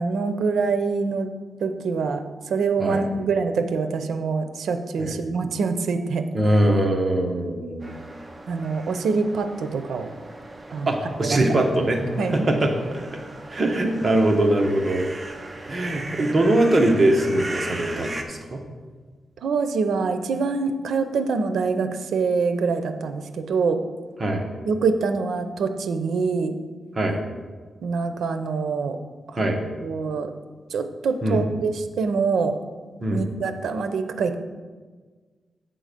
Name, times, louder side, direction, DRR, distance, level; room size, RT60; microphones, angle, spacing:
voice 1, 0.0-1.3 1.6-6.2 8.5-10.2 10.7-10.9 11.2-11.4 12.2-12.4 19.4-23.8 24.6-26.6 27.8-29.0 29.3-29.4 29.8-30.3 30.7-32.6 33.1-34.4, right 4 dB, 85° right, 8 dB, 0.6 m, -25 dB
voice 2, 6.3-8.0 10.9-12.0 12.3-13.0 13.5-15.1 15.7-18.6 24.2-24.4 26.9-27.2 29.4-29.6 31.2-31.4 33.0-33.2, right 1 dB, 35° right, 2 dB, 1.1 m, -22 dB
sound 1, 7.8-18.2, right 2 dB, 15° right, 0.7 m, -38 dB
8.7 x 3.8 x 6.7 m, 1.4 s
wide cardioid pair, 115°, 0 cm